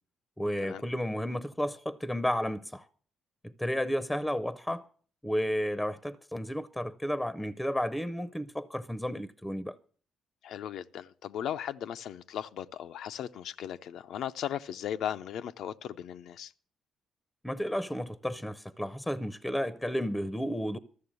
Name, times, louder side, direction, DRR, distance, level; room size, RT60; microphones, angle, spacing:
voice 1, 0.4-2.9 3.6-4.9 5.2-9.8 17.4-20.8, equal, 5° left, 0.6 m, -32 dB
voice 2, 10.4-16.5, left 10 dB, 75° left, 0.5 m, -37 dB
13.5 x 6.9 x 8.1 m
cardioid pair, 90°, 0 cm